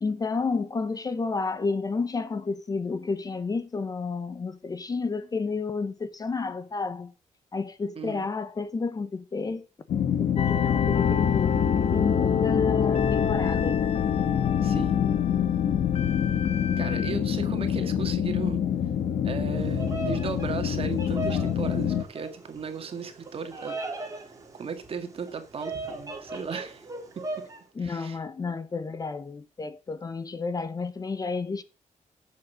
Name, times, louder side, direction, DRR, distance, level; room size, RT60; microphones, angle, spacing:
voice 1, 0.0-7.1 7.5-9.7 10.2-13.9 27.7-31.6, left 4 dB, 30° left, 0.9 m, -31 dB
voice 2, 8.0-8.3 14.6-15.0 16.8-18.6 19.2-23.8 24.5-26.9 27.2-27.3 27.8-28.2, right 5 dB, 45° right, 2.0 m, -36 dB
sound 1, 9.9-22.0, left 9 dB, 80° left, 1.3 m, -26 dB
sound 2, 10.4-17.1, left 7 dB, 50° left, 0.8 m, -28 dB
Bird vocalization bird call bird song, 19.6-27.6, right 2 dB, 25° right, 2.9 m, -38 dB
11.0 x 7.5 x 6.0 m
wide cardioid pair, 170°, 13 cm